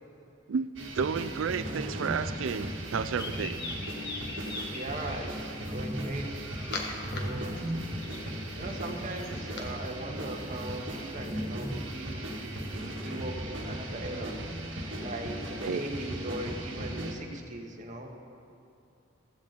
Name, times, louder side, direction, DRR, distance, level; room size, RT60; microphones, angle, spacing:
voice 1, 0.5-3.6 15.7-15.9, right 6 dB, 85° right, 12 dB, 0.4 m, -32 dB
sound 1, 0.8-17.1, right 1 dB, 65° right, 1.9 m, -37 dB
sound 2, 2.9-5.2 6.0-7.2 7.5-9.6, left 3 dB, 55° left, 1.6 m, -40 dB
voice 2, 4.7-6.3 6.8-7.6 8.5-14.3 15.0-18.1, right 1 dB, 40° right, 1 dB, 1.5 m, -39 dB
16.0 x 15.0 x 4.0 m, 2.7 s
head